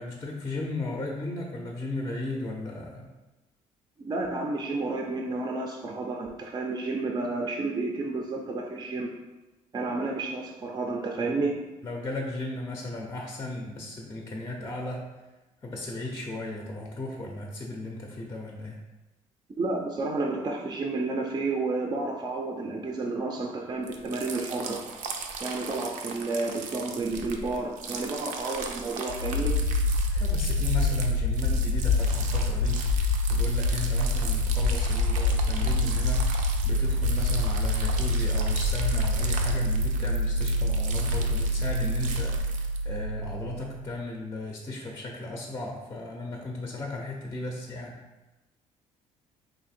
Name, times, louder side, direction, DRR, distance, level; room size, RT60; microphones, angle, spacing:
voice 1, 0.0-3.1 11.8-15.1 15.6-18.8 30.1-36.3 36.6-48.0, left 2 dB, 20° left, 0 dB, 0.5 m, -36 dB
voice 2, 4.0-9.1 9.7-11.6 19.6-24.8 25.4-29.6, right 3 dB, 30° right, 0 dB, 0.4 m, -31 dB
sound 1, 23.8-42.8, right 4 dB, 80° right, 0.5 m, -38 dB
sound 2, 29.1-43.9, left 1 dB, 90° left, 0.4 m, -26 dB
3.2 x 2.6 x 4.2 m, 1.1 s
cardioid pair, 100°, 13 cm